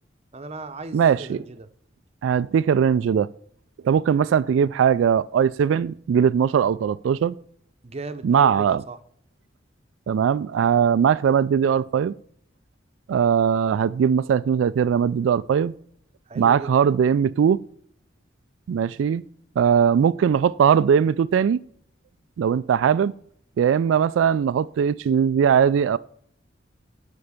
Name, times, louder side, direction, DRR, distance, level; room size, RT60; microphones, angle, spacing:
voice 1, 0.3-1.7 7.8-9.0 16.3-16.7, right 3 dB, 35° right, 0.7 m, -37 dB
voice 2, 0.9-1.4 2.2-3.3 3.8-7.3 8.2-8.8 10.1-12.1 13.1-15.7 16.4-17.6 18.7-19.2 19.6-21.6 22.4-23.1 23.6-26.0, right 7 dB, 90° right, 0.3 m, -20 dB
11.5 x 4.5 x 7.0 m
head